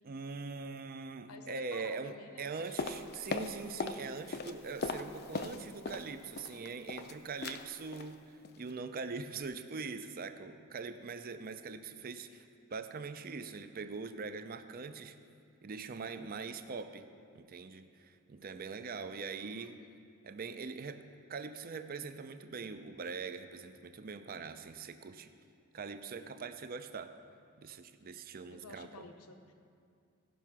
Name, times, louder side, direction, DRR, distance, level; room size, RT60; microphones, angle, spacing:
voice 1, 0.0-8.2 8.6-12.5 12.7-15.2 15.6-17.1 17.3-19.8 20.2-21.0 21.3-25.3 25.7-27.1 27.6-29.1, right 4 dB, 40° right, 9 dB, 0.5 m, -42 dB
voice 2, 1.3-2.8 19.4-19.8 28.5-29.5, left 3 dB, 75° left, 6 dB, 0.8 m, -52 dB
sound 1, 2.8-4.0 4.3-6.1 6.4-7.1 7.4-7.6 7.9-8.1 8.4-8.7 9.0-9.1, left 4 dB, 45° left, 0.5 m, -38 dB
16.0 x 5.7 x 6.1 m, 2.3 s
head